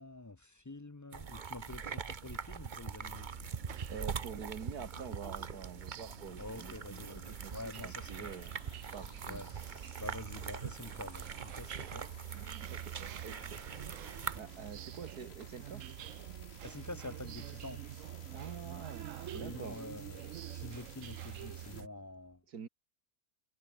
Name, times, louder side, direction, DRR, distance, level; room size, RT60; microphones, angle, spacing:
voice 1, 0.0-3.3 6.4-8.3 9.3-9.5 10.0-12.1 16.6-17.8 19.3-22.4, left 2 dB, 30° left, 0.3 m, -47 dB
sound 1, 1.1-14.4, right 6 dB, 35° right, 0.9 m, -43 dB
sound 2, 2.6-21.8, left 7 dB, 45° left, 1.2 m, -58 dB
sound 3, 3.0-21.9, right 12 dB, 65° right, 0.9 m, -47 dB
voice 2, 3.9-8.5 8.9-9.5 12.7-13.6 14.3-15.8 18.3-19.8 22.5-22.7, right 6 dB, 80° right, 2.3 m, -47 dB
omnidirectional pair, 1.6 m